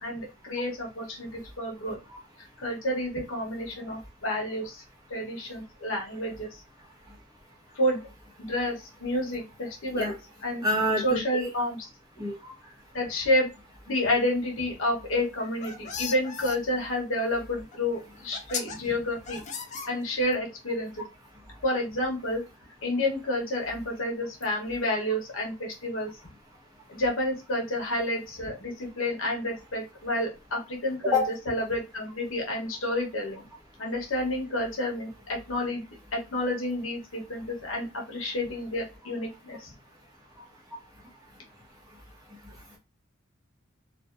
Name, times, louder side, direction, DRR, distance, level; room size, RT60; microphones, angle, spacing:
voice 1, 0.0-2.0 2.6-4.8 5.1-6.6 7.7-8.0 8.5-10.1 10.4-10.6 11.0-11.9 12.6-13.5 13.9-19.4 19.9-21.0 21.6-22.4 22.8-26.1 26.9-31.2 31.5-33.4 33.8-35.8 36.1-39.7, left 1 dB, 70° left, 0 dB, 0.9 m, -30 dB
voice 2, 10.6-11.5 12.2-12.5 31.0-31.3, left 2 dB, 20° right, -1 dB, 0.9 m, -26 dB
sound 1, 15.3-16.6 17.7-17.8 18.3-18.8 19.3-20.3, left 6 dB, 35° left, 0.4 m, -36 dB
2.6 x 2.2 x 2.3 m, 0.27 s
head